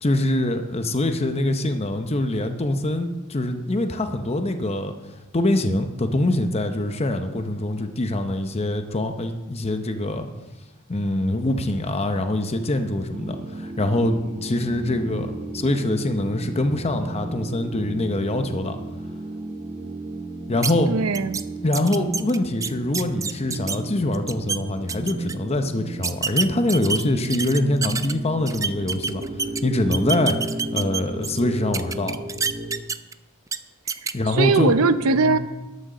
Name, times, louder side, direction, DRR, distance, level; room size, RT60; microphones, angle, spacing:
voice 1, 0.0-4.9 5.3-10.3 10.9-18.8 20.5-20.9 21.6-29.2 29.6-32.2 34.1-34.7 35.2-35.4, left 1 dB, 30° left, 7 dB, 0.7 m, -24 dB
sound 1, 13.1-32.8, right 2 dB, 35° right, 0.8 m, -34 dB
sound 2, 20.6-20.7 21.1-21.4 21.7-23.8 24.1-24.6 24.9-25.3 26.0-28.1 28.5-29.6 29.9-31.4 31.7-33.1 33.5-33.6 33.9-34.1, right 5 dB, 15° right, 0.4 m, -27 dB
voice 2, 20.9-21.4 33.9-35.4, right 4 dB, 85° right, 12 dB, 0.7 m, -21 dB
12.5 x 6.4 x 6.5 m, 1.1 s
head